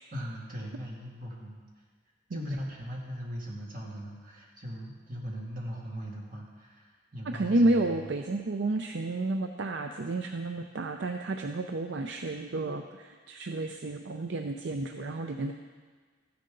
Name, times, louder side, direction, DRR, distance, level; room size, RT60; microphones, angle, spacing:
voice 1, 0.1-1.6 2.3-8.0, equal, 45° right, -3 dB, 2.4 m, -39 dB
voice 2, 7.3-15.5, right 2 dB, 65° right, 5 dB, 0.5 m, -30 dB
14.0 x 10.5 x 3.9 m, 1.5 s
head